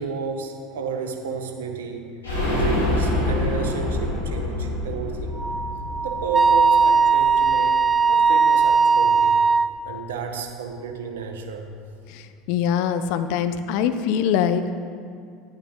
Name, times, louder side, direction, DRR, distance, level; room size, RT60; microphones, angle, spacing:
voice 1, 0.0-2.1 2.5-5.4 6.0-7.8 8.1-9.3 9.8-11.7, right 5 dB, 75° right, 4 dB, 1.1 m, -32 dB
sound 1, 2.2-7.9 8.2-8.3 8.6-8.7, left 1 dB, 90° left, 2.6 m, -26 dB
Wind instrument woodwind instrument, 5.4-9.7, right 5 dB, 15° right, 0.3 m, -18 dB
voice 2, 12.1-14.8, left 8 dB, 60° left, 10 dB, 0.5 m, -23 dB
10.5 x 8.9 x 3.7 m, 2.3 s
hypercardioid pair, 75°, 0 cm